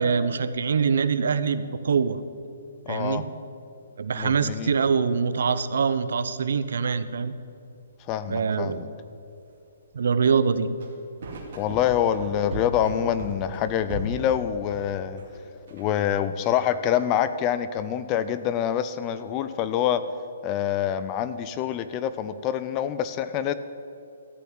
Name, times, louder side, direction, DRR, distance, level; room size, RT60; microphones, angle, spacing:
voice 1, 0.0-2.2 2.9-3.2 4.0-7.3 8.3-8.8 9.9-10.7, right 6 dB, 60° right, 13 dB, 0.7 m, -24 dB
voice 2, 2.9-3.2 4.1-4.7 8.1-8.9 11.5-15.2 15.7-20.0 20.4-23.5, left 10 dB, 15° left, 12 dB, 0.3 m, -26 dB
sound 1, 5.3-5.5 5.8-5.9 6.4-6.6 7.3-7.4 8.2-9.8 10.2-15.4 15.7-16.3 16.7-17.0, right 2 dB, 45° right, 2.3 m, -38 dB
14.0 x 5.9 x 9.6 m, 2.6 s
hypercardioid pair, 180°, 0 cm